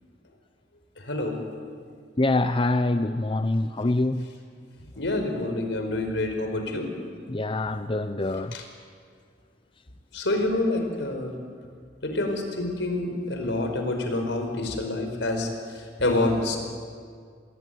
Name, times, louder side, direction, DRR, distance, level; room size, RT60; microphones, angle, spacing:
voice 1, 1.0-1.4 5.0-6.9 8.5-8.6 10.1-11.3 12.0-15.5 15.7-16.6, left 2 dB, 75° left, 4.9 m, -27 dB
voice 2, 2.2-4.2 7.3-8.5, left 2 dB, 30° left, 0.7 m, -25 dB
27.5 x 21.5 x 9.3 m
head